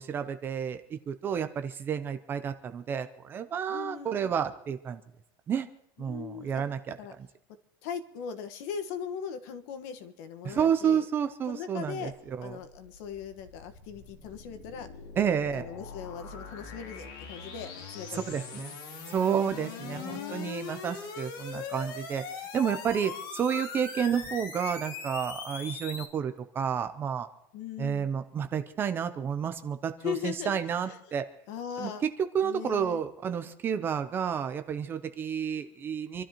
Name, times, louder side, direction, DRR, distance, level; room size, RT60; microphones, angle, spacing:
voice 1, 0.0-5.0 5.5-5.7 6.0-7.0 10.4-12.6 15.2-15.7 18.1-18.7 19.1-22.2 22.5-27.3 27.8-31.2 31.8-36.2, right 8 dB, 20° right, 10 dB, 0.5 m, -30 dB
voice 2, 3.7-4.3 6.0-6.5 7.0-7.1 7.8-11.0 11.5-12.1 12.4-14.9 15.2-18.5 19.6-20.5 27.5-28.1 30.0-30.6 30.9-31.0 31.5-32.1 32.4-33.0, left 8 dB, 55° left, 9 dB, 1.4 m, -39 dB
sound 1, 12.2-26.0, left 5 dB, 85° left, 2.9 m, -41 dB
27.5 x 12.5 x 2.9 m, 0.82 s
cardioid pair, 175°, 11 cm